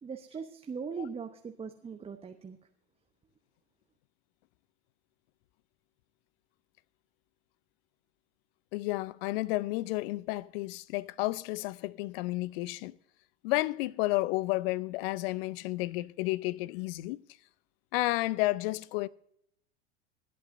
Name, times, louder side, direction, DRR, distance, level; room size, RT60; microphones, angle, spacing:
voice 1, 0.0-2.6, right 5 dB, 15° right, 0.8 m, -40 dB
voice 2, 8.7-12.9 13.4-17.2 17.9-19.1, left 20 dB, 55° left, 0.6 m, -31 dB
24.5 x 8.5 x 2.6 m
hypercardioid pair, 85°, 35 cm